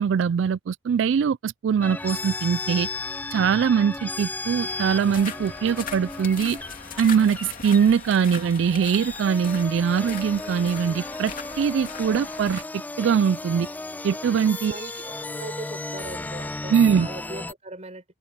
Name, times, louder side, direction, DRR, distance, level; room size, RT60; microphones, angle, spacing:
voice 1, 0.0-2.9 3.3-6.6 7.0-12.6 13.0-13.7 14.0-14.8 16.7-17.1, right 7 dB, 75° right, 0.3 m, -22 dB
sound 1, 1.8-17.5, left 2 dB, 10° left, 0.3 m, -35 dB
sound 2, 4.7-12.6, left 6 dB, 50° left, 2.4 m, -40 dB
voice 2, 14.7-18.0, right 2 dB, 35° right, 4.7 m, -39 dB
head